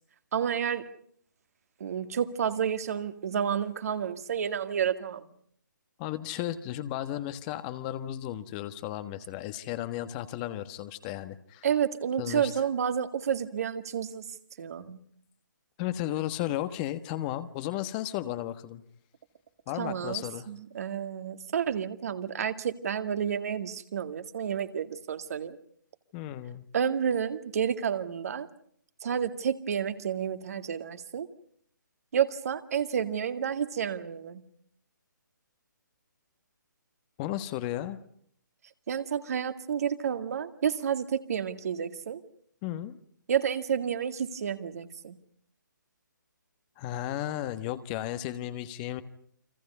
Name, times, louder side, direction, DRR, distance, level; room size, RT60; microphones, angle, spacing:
voice 1, 0.3-0.9 1.8-5.3 11.6-14.3 14.6-15.0 19.8-25.6 26.7-28.5 29.0-31.3 32.1-34.4 38.9-42.2 43.3-45.2, right 8 dB, 50° right, 9 dB, 2.1 m, -30 dB
voice 2, 6.0-11.7 12.2-12.6 15.8-18.8 19.7-20.5 26.1-26.6 37.2-38.0 42.6-43.0 46.8-49.0, left 13 dB, 25° left, 11 dB, 1.3 m, -34 dB
30.0 x 24.5 x 5.5 m, 0.65 s
figure-of-eight pair, 140°, 11 cm